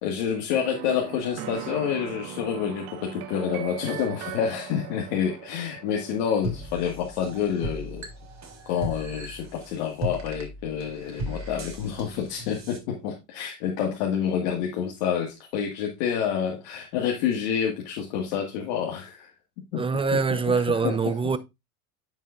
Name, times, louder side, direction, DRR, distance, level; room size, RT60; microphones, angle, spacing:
voice 1, 0.0-8.1 8.7-19.3 19.7-19.8 20.3-20.9 21.2-21.4, left 8 dB, 70° left, 2.2 m, -28 dB
sound 1, 0.5-8.1, right 11 dB, 70° right, 1.3 m, -40 dB
sound 2, 6.4-12.8, right 1 dB, 35° right, 3.4 m, -37 dB
voice 2, 19.7-21.4, right 5 dB, 10° right, 0.6 m, -24 dB
9.5 x 7.3 x 2.6 m
hypercardioid pair, 90°, 46 cm